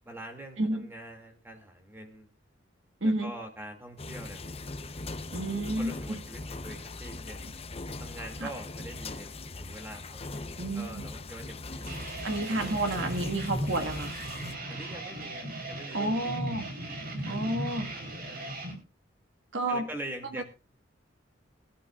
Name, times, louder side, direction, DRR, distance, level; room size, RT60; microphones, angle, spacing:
voice 1, 0.0-2.3 3.0-4.6 5.8-7.4 8.0-9.3 9.6-10.4 10.7-11.9 12.5-12.7 14.7-16.4 17.2-17.5 18.3-18.7 19.7-20.4, right 1 dB, 10° right, 4 dB, 2.4 m, -44 dB
voice 2, 3.0-3.3 5.3-6.2 8.4-8.5 10.6-11.0 12.2-14.1 15.9-16.6 17.3-17.9 19.5-19.9 20.4-20.5, right 2 dB, 85° right, 6 dB, 1.7 m, -30 dB
sound 1, 4.0-14.5, left 2 dB, 35° left, 0.8 m, -40 dB
sound 2, 11.9-18.7, right 1 dB, 55° right, 4.0 m, -37 dB
21.5 x 11.5 x 2.4 m, 0.30 s
head